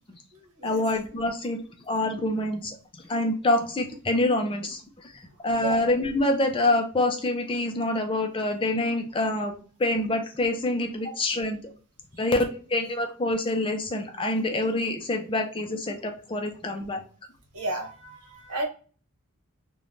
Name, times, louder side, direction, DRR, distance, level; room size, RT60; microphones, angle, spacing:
voice 1, 0.6-2.8 3.1-4.8 5.1-9.5 9.8-11.6 12.1-17.0, left 2 dB, 25° left, 4 dB, 0.4 m, -26 dB
voice 2, 17.5-18.7, right 2 dB, 85° right, 1 dB, 1.0 m, -32 dB
3.1 x 2.2 x 2.5 m, 0.39 s
head